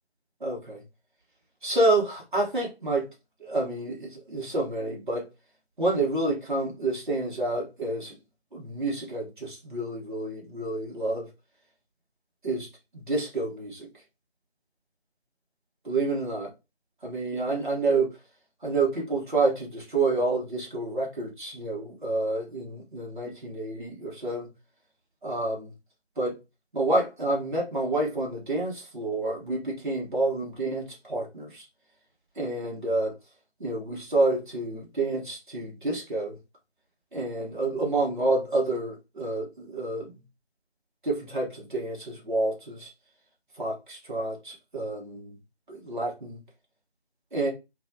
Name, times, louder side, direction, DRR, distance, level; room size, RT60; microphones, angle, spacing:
voice 1, 0.4-0.8 1.6-3.1 3.4-5.3 5.8-8.2 8.5-11.3 12.4-12.7 12.9-13.9 15.8-16.5 17.0-18.1 18.6-24.5 25.2-25.7 26.2-26.4 26.7-31.7 32.4-33.1 33.6-36.4 37.1-40.2 41.0-42.9 43.6-45.4 45.7-46.4 47.3-47.5, right 2 dB, 50° right, 1.2 m, -28 dB
3.1 x 2.3 x 2.6 m
figure-of-eight pair, 165°, 33 cm